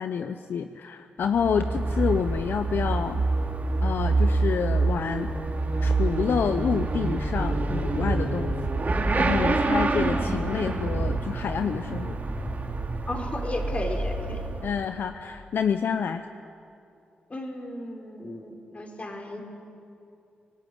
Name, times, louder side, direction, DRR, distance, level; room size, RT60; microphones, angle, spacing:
voice 1, 0.0-3.2 3.8-5.3 5.8-8.7 9.2-12.2 14.6-16.2, left 7 dB, 75° left, 9 dB, 0.8 m, -28 dB
Motorcycle / Accelerating revving vroom, 1.2-15.1, right 3 dB, 50° right, 3.2 m, -27 dB
voice 2, 13.1-14.5 17.3-19.4, left 1 dB, 35° left, 2 dB, 5.0 m, -34 dB
25.0 x 19.0 x 9.5 m, 2.6 s
cardioid pair, 50°, 4 cm